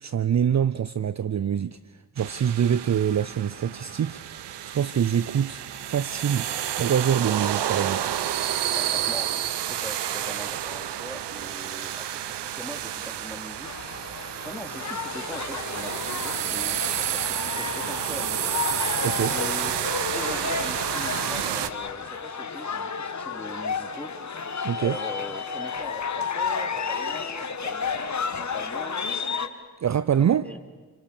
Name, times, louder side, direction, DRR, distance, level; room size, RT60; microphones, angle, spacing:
voice 1, 0.0-1.8 2.2-4.2 4.6-6.5 6.8-8.1 19.0-19.3 24.6-25.0 29.8-30.5, right 8 dB, 40° right, 16 dB, 0.7 m, -25 dB
sound 1, 2.2-21.7, right 11 dB, 70° right, 1.2 m, -30 dB
voice 2, 8.7-9.3 9.7-13.7 14.4-18.8 19.3-19.8 20.1-24.1 24.8-29.1 30.3-30.6, equal, 5° left, 5 dB, 3.3 m, -41 dB
sound 2, 13.6-29.5, left 5 dB, 40° left, 1.9 m, -32 dB
sound 3, 15.7-21.9, left 7 dB, 70° left, 2.6 m, -48 dB
28.0 x 23.5 x 6.8 m, 1.4 s
hypercardioid pair, 45°, 43 cm